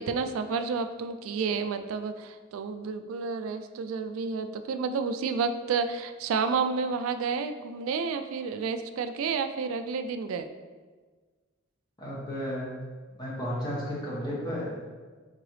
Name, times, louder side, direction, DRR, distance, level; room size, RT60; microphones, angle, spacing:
voice 1, 0.0-10.5, right 5 dB, 80° right, 9 dB, 0.3 m, -30 dB
voice 2, 12.0-12.7 13.2-14.7, equal, 20° left, -6 dB, 1.1 m, -33 dB
3.9 x 3.7 x 3.1 m, 1.4 s
head